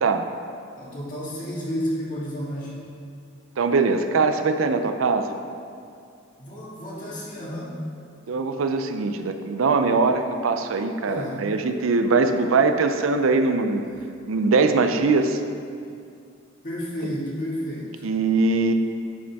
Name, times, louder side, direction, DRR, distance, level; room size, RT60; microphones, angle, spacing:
voice 1, 0.7-2.8 6.4-7.7 11.1-11.4 16.6-18.0, equal, 40° left, -6 dB, 2.0 m, -31 dB
voice 2, 3.6-5.3 8.3-13.8 14.3-15.4 18.0-18.7, right 4 dB, 80° right, 8 dB, 0.5 m, -21 dB
11.0 x 5.2 x 3.5 m, 2.4 s
head